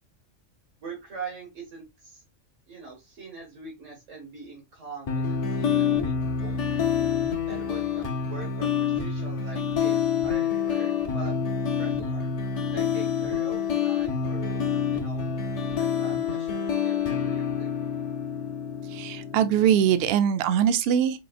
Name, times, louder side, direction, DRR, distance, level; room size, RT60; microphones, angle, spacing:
voice 1, 0.8-2.2 2.7-6.7 7.5-11.4 11.7-12.3 12.7-14.6 14.9-15.2 15.8-17.8, right 4 dB, 80° right, 1.7 m, -42 dB
sound 1, 5.1-20.1, left 7 dB, 45° left, 0.5 m, -27 dB
voice 2, 18.9-21.2, right 9 dB, 65° right, 0.7 m, -22 dB
4.8 x 2.8 x 2.4 m
omnidirectional pair, 1.3 m